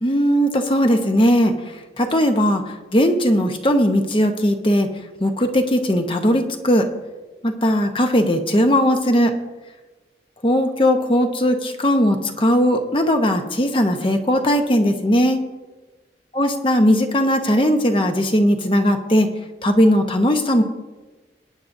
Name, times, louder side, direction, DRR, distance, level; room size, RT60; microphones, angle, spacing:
voice 1, 0.0-1.6 2.0-2.6 2.9-4.9 5.2-6.9 7.4-9.3 10.4-15.4 16.4-19.3 19.6-20.6, equal, 30° left, 5 dB, 1.0 m, -18 dB
21.0 x 9.7 x 2.7 m, 1.2 s
head